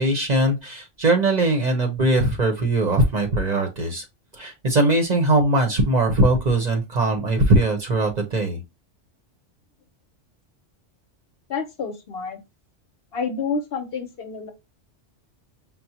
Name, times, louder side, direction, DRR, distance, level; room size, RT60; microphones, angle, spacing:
voice 1, 0.0-4.0 4.3-8.6, right 2 dB, 45° right, 0.8 m, -20 dB
voice 2, 11.5-12.4 13.1-14.5, left 5 dB, 60° left, 0.8 m, -29 dB
5.7 x 2.1 x 2.7 m
omnidirectional pair, 1.2 m